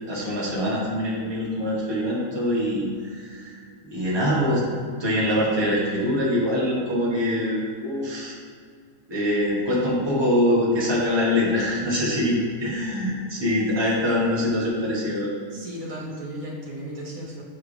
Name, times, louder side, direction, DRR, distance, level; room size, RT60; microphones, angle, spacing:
voice 1, 0.0-4.6 5.0-8.3 9.1-15.3, left 1 dB, 20° right, -6 dB, 1.3 m, -24 dB
voice 2, 15.5-17.4, right 1 dB, 60° right, -3 dB, 1.7 m, -35 dB
7.1 x 4.6 x 3.3 m, 2.1 s
omnidirectional pair, 1.7 m